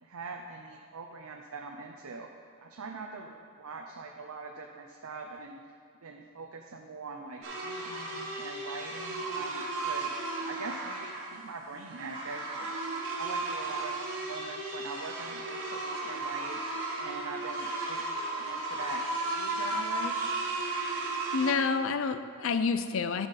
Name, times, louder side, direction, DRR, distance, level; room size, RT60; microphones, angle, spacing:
voice 1, 0.0-2.3 2.6-5.6 6.0-10.1 10.4-12.8 13.1-16.6 17.0-20.1, right 4 dB, 85° right, 2 dB, 0.6 m, -43 dB
sound 1, 7.4-21.5, right 2 dB, 60° right, 1.6 m, -35 dB
voice 2, 21.3-23.3, left 5 dB, 65° left, 11 dB, 0.5 m, -28 dB
12.5 x 5.7 x 4.1 m, 2.2 s
head